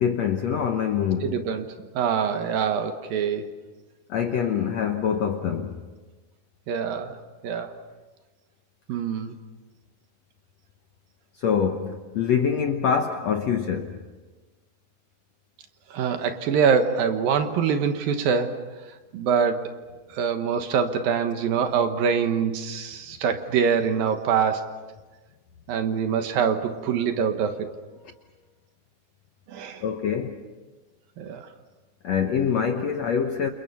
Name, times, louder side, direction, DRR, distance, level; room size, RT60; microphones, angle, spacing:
voice 1, 0.0-1.4 4.1-5.8 11.4-14.0 29.8-30.4 32.0-33.5, left 7 dB, 70° left, 1.7 m, -25 dB
voice 2, 1.2-3.5 6.7-7.2 7.4-7.7 8.9-9.4 15.9-18.6 19.1-19.7 20.1-24.7 25.7-27.7 29.5-29.8 31.2-31.5, right 6 dB, 70° right, 3.0 m, -24 dB
29.0 x 29.0 x 5.7 m
omnidirectional pair, 4.4 m